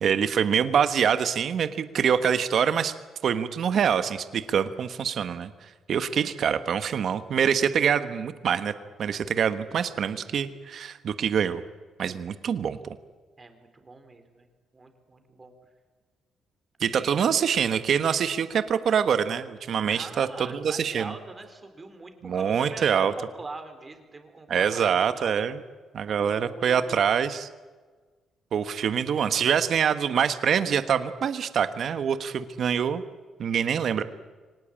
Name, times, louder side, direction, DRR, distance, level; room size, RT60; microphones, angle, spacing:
voice 1, 0.0-2.9 3.2-5.5 5.9-8.7 9.0-11.6 12.0-13.0 16.8-21.1 22.2-23.1 24.5-25.6 25.9-27.5 28.5-33.0 33.4-34.0, right 7 dB, 60° right, 11 dB, 1.3 m, -25 dB
voice 2, 13.4-14.5 14.7-15.5 16.8-17.2 19.9-25.4 26.2-27.0, right 3 dB, 25° right, 7 dB, 4.1 m, -43 dB
24.5 x 19.0 x 8.7 m, 1.4 s
cardioid pair, 90°, 0 cm